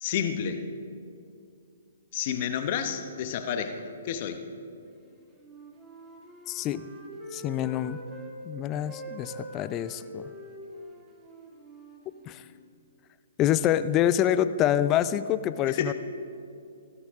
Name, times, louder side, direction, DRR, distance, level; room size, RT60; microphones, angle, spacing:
voice 1, 0.0-0.6 2.1-3.8 4.0-4.4 15.7-15.9, left 8 dB, 45° left, 8 dB, 1.0 m, -30 dB
Wind instrument woodwind instrument, 5.4-8.3 8.8-12.7, right 1 dB, 10° right, 1.7 m, -45 dB
voice 2, 6.5-6.9 7.3-8.0 8.5-10.3 12.3-12.4 13.4-15.9, left 11 dB, 25° left, 14 dB, 0.4 m, -26 dB
15.5 x 13.5 x 3.6 m, 2.5 s
hypercardioid pair, 135°, 0 cm